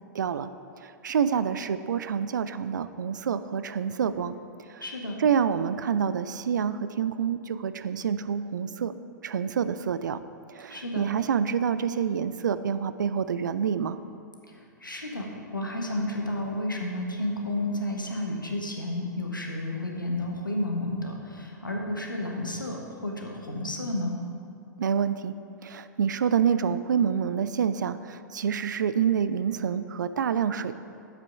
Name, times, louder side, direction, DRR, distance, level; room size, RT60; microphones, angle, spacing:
voice 1, 0.1-0.5 0.8-4.4 4.7-4.8 5.2-8.9 9.2-10.2 10.5-14.0 24.8-25.3 25.6-30.7, right 7 dB, 70° right, 13 dB, 0.4 m, -27 dB
voice 2, 4.8-5.2 10.7-11.0 14.8-24.2, left 1 dB, 85° left, 0 dB, 1.2 m, -31 dB
7.5 x 6.0 x 5.9 m, 2.6 s
figure-of-eight pair, 100°, 10 cm